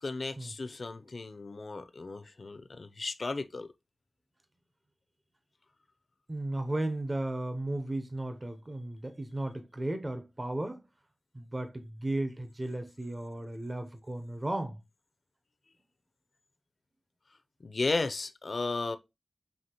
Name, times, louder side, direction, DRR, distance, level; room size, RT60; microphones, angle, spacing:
voice 1, 0.0-3.7 17.6-19.0, left 3 dB, 60° left, 0.4 m, -34 dB
voice 2, 6.3-10.8 11.3-14.8, right 1 dB, 30° right, 0.6 m, -35 dB
5.6 x 2.9 x 2.8 m
wide cardioid pair, 80°, 0 cm